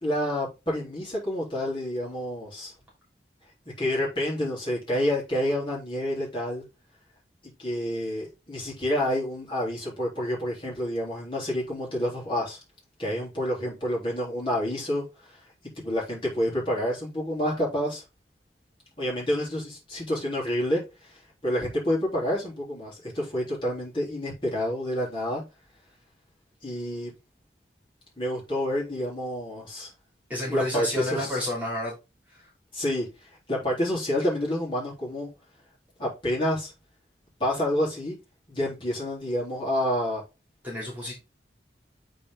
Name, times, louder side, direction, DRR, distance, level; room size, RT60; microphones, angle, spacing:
voice 1, 0.0-2.7 3.8-6.6 7.6-12.6 13.0-15.4 15.8-18.0 19.0-25.4 26.6-27.1 28.2-29.9 30.5-31.5 32.7-35.3 36.0-36.7 37.4-38.2 38.5-40.2, equal, 30° left, 3.5 m, -28 dB
voice 2, 30.3-31.9 32.3-32.4 40.6-41.1, left 1 dB, 10° right, 3.0 m, -30 dB
8.3 x 3.9 x 3.8 m
head